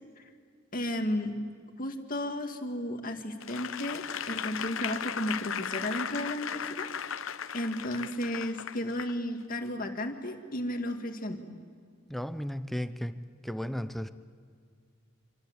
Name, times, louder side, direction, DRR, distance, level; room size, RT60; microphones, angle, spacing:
voice 1, 0.7-1.4 1.8-6.9 7.5-11.4, left 1 dB, 45° left, 5 dB, 2.1 m, -33 dB
Applause / Crowd, 3.4-9.1 9.7-9.8, left 8 dB, 90° left, 0.8 m, -36 dB
voice 2, 12.1-13.2 13.4-14.1, equal, ahead, 11 dB, 0.7 m, -34 dB
26.5 x 24.0 x 8.2 m, 2.1 s
head